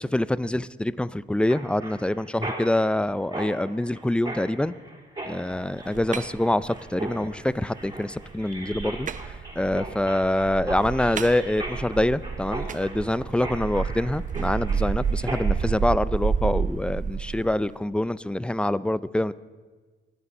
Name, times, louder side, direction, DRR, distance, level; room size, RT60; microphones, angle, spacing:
voice 1, 0.0-4.7 5.2-9.1 9.6-19.3, left 1 dB, 5° left, 18 dB, 0.4 m, -25 dB
Mechanisms, 1.5-15.7, right 2 dB, 20° right, 3.5 m, -38 dB
sound 1, 5.5-17.7, right 6 dB, 40° right, 0.7 m, -30 dB
25.0 x 9.8 x 5.4 m, 1.4 s
cardioid pair, 90°, 20 cm